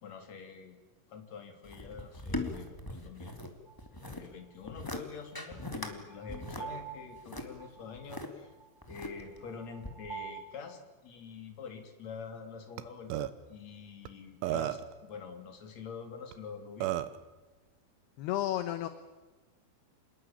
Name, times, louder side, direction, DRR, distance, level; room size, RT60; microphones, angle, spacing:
voice 1, 0.0-0.8 1.1-3.3 4.0-8.5 8.9-17.0, left 5 dB, 40° left, 6 dB, 3.8 m, -46 dB
sound 1, 1.6-3.5 3.8-4.3 4.6-5.0 5.3-5.9 6.3-8.3 8.8-9.4 9.8-9.9, left 2 dB, 20° left, 0.5 m, -40 dB
sound 2, 3.7-3.8 5.6-10.4, right 8 dB, 10° right, 3.0 m, -47 dB
Burping eructation, 12.8-12.9 13.1-13.3 14.1-14.2 14.4-14.9 16.3-16.4 16.8-17.2, right 14 dB, 80° right, 3.5 m, -32 dB
voice 2, 18.2-18.9, left 13 dB, 70° left, 11 dB, 2.7 m, -32 dB
28.0 x 20.5 x 8.9 m, 1.2 s
omnidirectional pair, 5.6 m